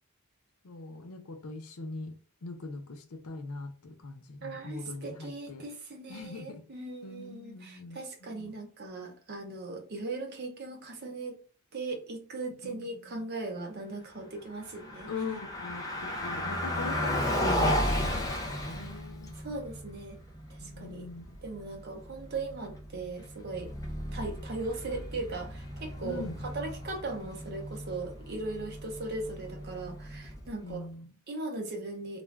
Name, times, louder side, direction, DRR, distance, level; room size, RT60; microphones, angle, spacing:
voice 1, 0.6-2.1 2.4-5.6 6.1-6.6 7.0-8.5 12.6-13.3 15.0-19.4 20.6-21.4 26.0-26.4 30.5-31.1, left 3 dB, 80° left, 0.6 m, -42 dB
voice 2, 4.4-11.4 11.7-15.1 19.4-20.2 20.5-21.0 21.4-23.7 24.1-30.8 31.3-32.2, right 3 dB, 45° right, 0.7 m, -38 dB
Car passing by, 14.6-30.7, left 1 dB, 15° left, 0.5 m, -35 dB
2.4 x 2.2 x 3.2 m
head